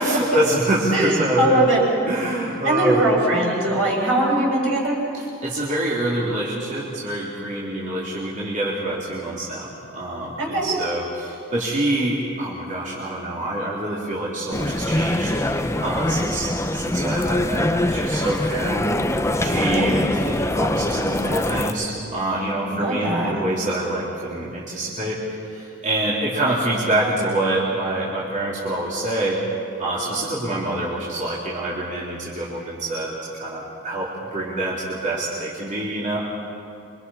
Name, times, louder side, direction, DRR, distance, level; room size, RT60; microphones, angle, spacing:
voice 1, 0.0-1.7 2.1-3.0 5.1-15.3 15.8-18.9 19.4-25.2 25.5-29.4 29.8-36.2, right 1 dB, 35° right, -7 dB, 3.8 m, -26 dB
voice 2, 0.9-1.8 2.6-5.0 10.4-10.7 19.7-20.0 22.7-23.4, right 1 dB, 70° right, -3 dB, 7.6 m, -21 dB
sound 1, 14.5-21.7, left 1 dB, 15° left, 0.8 m, -23 dB
27.5 x 25.5 x 5.8 m, 2.7 s
head